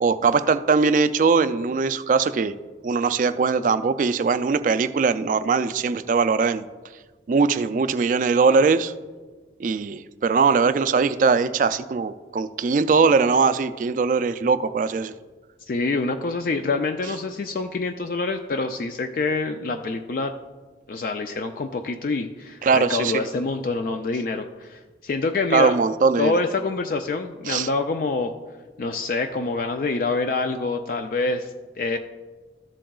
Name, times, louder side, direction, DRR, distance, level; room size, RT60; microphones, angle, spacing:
voice 1, 0.0-2.6 2.8-6.7 7.3-8.9 9.6-15.1 22.6-23.1 25.5-26.4 27.5-27.7, right 5 dB, 45° right, 13 dB, 0.3 m, -21 dB
voice 2, 15.7-20.3 20.9-25.7 26.2-28.3 28.8-32.0, left 3 dB, 50° left, 6 dB, 0.4 m, -26 dB
13.5 x 7.5 x 2.3 m, 1.3 s
head